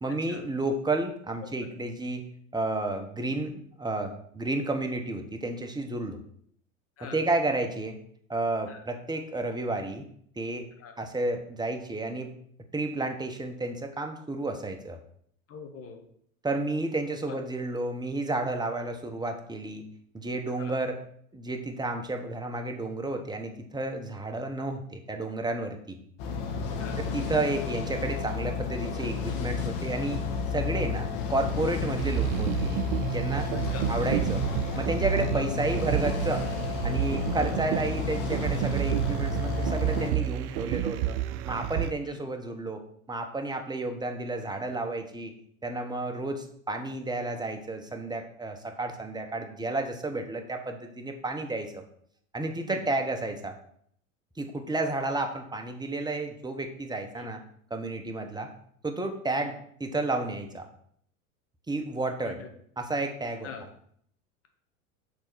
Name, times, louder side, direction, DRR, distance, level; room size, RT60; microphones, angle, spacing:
voice 1, 0.0-2.2 2.5-6.2 7.0-8.0 8.3-10.0 10.4-10.7 11.0-12.3 12.7-15.0 16.4-19.8 20.1-21.0 21.3-26.0 27.0-30.2 30.5-32.8 33.1-33.5 33.9-34.4 34.7-36.4 36.8-41.2 41.4-42.8 43.1-45.3 45.6-51.8 52.3-53.5 54.4-57.4 57.7-58.5 58.8-59.5 59.8-60.7 61.7-62.4 62.8-63.5, right 2 dB, 10° right, 4 dB, 1.1 m, -31 dB
voice 2, 15.5-16.0 17.1-17.4 20.6-20.8 26.7-27.0 33.5-33.9 35.3-35.5 37.5-37.7 42.1-42.2 52.7-52.8 57.2-57.3 59.4-59.5 62.2-62.5 63.4-63.6, left 6 dB, 35° left, 4 dB, 1.7 m, -43 dB
sound 1, 26.2-40.1, left 5 dB, 65° left, 1.4 m, -32 dB
sound 2, 32.0-41.9, right 13 dB, 55° right, 0.6 m, -30 dB
6.7 x 3.9 x 6.3 m, 0.65 s
hypercardioid pair, 90°, 42 cm